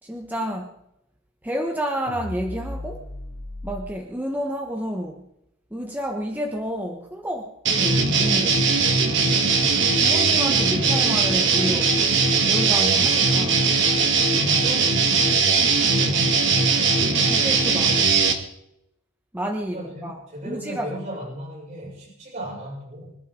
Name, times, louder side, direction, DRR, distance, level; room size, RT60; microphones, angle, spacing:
voice 1, 0.0-0.7 1.4-3.1 3.6-5.3 5.7-8.7 10.0-12.0 12.5-13.7 14.6-15.5 17.2-18.3 19.3-21.0, equal, 10° right, 1 dB, 1.2 m, -30 dB
sound 1, 2.1-3.9, left 1 dB, 85° left, 2.4 m, -35 dB
sound 2, 7.7-18.3, right 4 dB, 55° right, 2.4 m, -20 dB
voice 2, 9.3-9.8 14.4-14.9 19.7-23.2, right 1 dB, 35° right, -5 dB, 6.8 m, -36 dB
25.5 x 13.0 x 3.9 m, 0.81 s
head